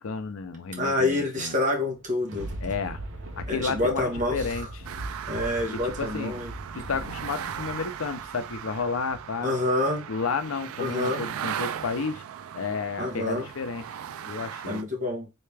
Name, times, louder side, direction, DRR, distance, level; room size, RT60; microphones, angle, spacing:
voice 1, 0.0-1.6 2.6-3.0 3.4-4.9 5.7-6.3 6.7-9.5 10.1-12.2 12.5-13.9 14.2-14.8, left 4 dB, 75° left, 0.5 m, -32 dB
voice 2, 0.8-2.6 3.5-4.4 5.3-6.5 9.4-10.1 10.8-11.2 13.0-13.5 14.7-15.3, left 2 dB, 40° right, 1.1 m, -27 dB
Thunder, 1.9-9.4 9.9-10.0, right 1 dB, 65° right, 0.8 m, -40 dB
sound 1, 4.8-14.8, right 8 dB, 85° right, 0.3 m, -38 dB
3.3 x 2.8 x 3.3 m
head